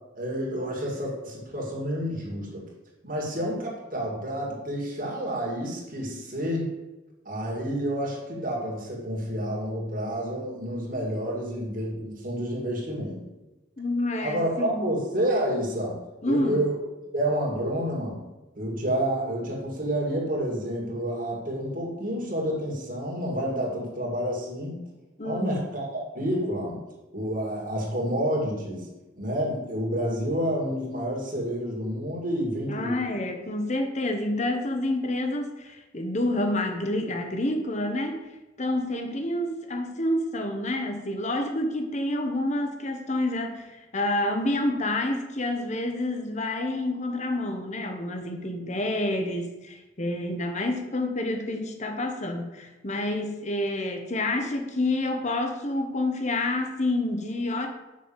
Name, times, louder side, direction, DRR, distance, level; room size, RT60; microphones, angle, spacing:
voice 1, 0.1-2.7 3.0-6.7 7.2-13.2 14.2-16.0 16.2-16.8 17.1-18.2 18.6-24.8 25.2-26.8 27.1-28.9 29.1-33.0, equal, 45° right, -3 dB, 2.6 m, -29 dB
voice 2, 13.8-14.9 16.2-16.7 25.2-25.7 32.6-38.2 38.6-57.7, left 1 dB, 35° left, 5 dB, 1.2 m, -28 dB
6.4 x 6.3 x 7.3 m, 1.1 s
head